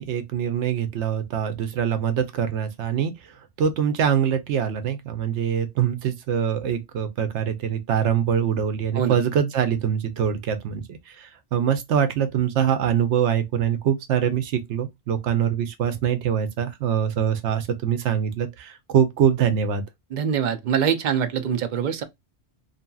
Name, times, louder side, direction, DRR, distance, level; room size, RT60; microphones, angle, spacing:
voice 1, 0.0-3.1 3.6-19.8, right 8 dB, 80° right, 0.9 m, -24 dB
voice 2, 20.1-22.0, right 8 dB, 55° right, 0.5 m, -24 dB
2.7 x 2.6 x 2.2 m
omnidirectional pair, 1.2 m